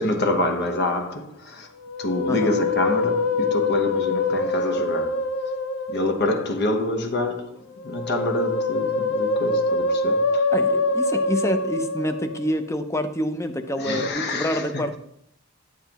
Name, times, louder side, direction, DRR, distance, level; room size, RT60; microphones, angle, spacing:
voice 1, 0.0-1.7 2.0-5.2 5.9-10.5 13.8-14.7, left 1 dB, 55° left, 1.0 m, -26 dB
Musical instrument, 1.8-6.4 7.7-12.5 13.7-14.1, left 3 dB, 75° left, 0.6 m, -24 dB
voice 2, 2.3-2.6 10.5-15.0, equal, 15° left, 0.6 m, -27 dB
10.0 x 7.5 x 2.9 m
head